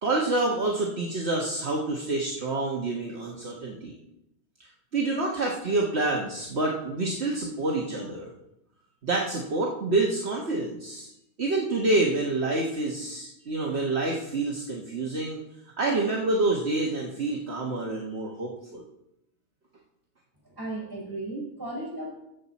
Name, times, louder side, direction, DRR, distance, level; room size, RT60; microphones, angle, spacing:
voice 1, 0.0-3.9 4.9-8.3 9.0-11.1 11.4-15.4 15.8-18.8, right 2 dB, 55° right, -2 dB, 1.5 m, -27 dB
voice 2, 20.4-22.1, right 2 dB, 15° right, -4 dB, 4.2 m, -35 dB
14.5 x 7.4 x 4.2 m, 0.83 s
omnidirectional pair, 1.4 m